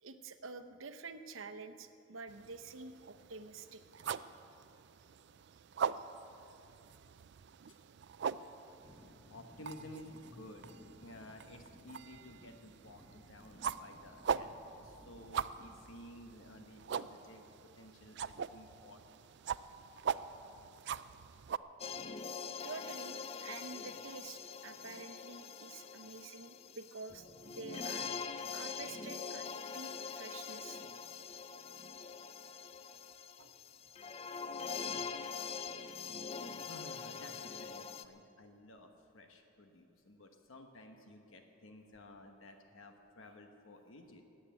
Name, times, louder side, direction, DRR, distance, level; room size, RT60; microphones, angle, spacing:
voice 1, 0.0-4.3 22.6-28.1 28.5-29.5 29.7-30.8 33.3-33.5 38.1-38.2, right 4 dB, 70° right, 9 dB, 0.9 m, -49 dB
sound 1, 2.3-21.6, right 7 dB, 55° right, 0.4 m, -42 dB
sound 2, 8.8-17.3, left 1 dB, 10° left, 1.4 m, -60 dB
voice 2, 9.1-17.5 17.7-19.2 36.7-44.2, left 1 dB, 75° left, 5 dB, 1.1 m, -54 dB
sound 3, 21.8-38.0, left 5 dB, 30° left, 0.5 m, -44 dB
18.5 x 8.2 x 9.1 m, 2.8 s
head